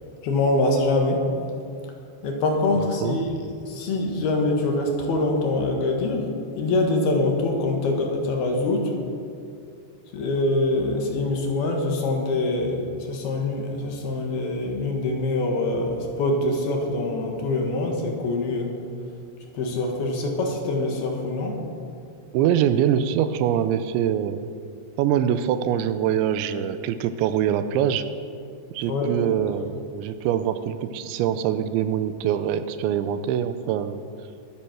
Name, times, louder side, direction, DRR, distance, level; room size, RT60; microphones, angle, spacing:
voice 1, 0.2-1.2 2.2-6.3 6.6-9.0 10.1-18.7 19.5-21.6 28.9-29.6, left 2 dB, 65° left, 1 dB, 3.3 m, -24 dB
voice 2, 2.8-3.2 22.3-24.4 25.0-28.0 28.7-34.0, right 9 dB, 90° right, 11 dB, 3.0 m, -24 dB
22.5 x 8.7 x 6.2 m, 2.4 s
omnidirectional pair, 5.3 m